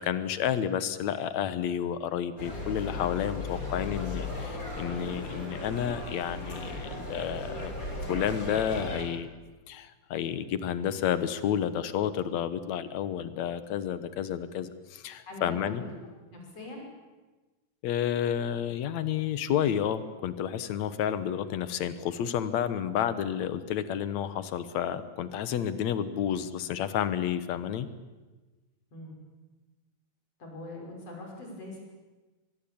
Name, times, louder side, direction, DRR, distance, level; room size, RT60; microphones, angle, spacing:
voice 1, 0.0-7.7 8.1-9.3 9.7-15.8 17.8-27.9, left 9 dB, 65° left, 13 dB, 2.4 m, -30 dB
sound 1, 2.4-9.0, left 2 dB, 25° left, 4.8 m, -36 dB
voice 2, 15.3-15.9 16.3-16.8 28.9-29.2 30.4-31.8, left 2 dB, 50° left, 1 dB, 7.0 m, -42 dB
25.0 x 21.0 x 8.7 m, 1.2 s
omnidirectional pair, 3.6 m